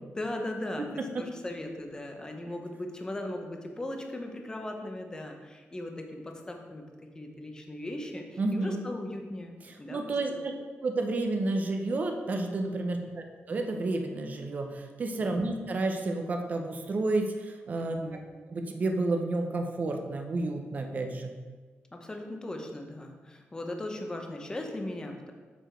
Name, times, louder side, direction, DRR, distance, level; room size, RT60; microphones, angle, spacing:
voice 1, 0.1-6.8 7.1-9.5 9.8-10.0 10.3-10.5 12.8-13.2 15.2-15.5 17.8-18.2 21.9-25.3, left 1 dB, 15° left, 3 dB, 0.7 m, -38 dB
voice 2, 8.4-8.8 9.9-10.5 10.8-18.0 18.5-21.3, right 2 dB, 35° right, 4 dB, 0.6 m, -30 dB
6.9 x 5.0 x 4.4 m, 1.4 s
wide cardioid pair, 170°, 5 cm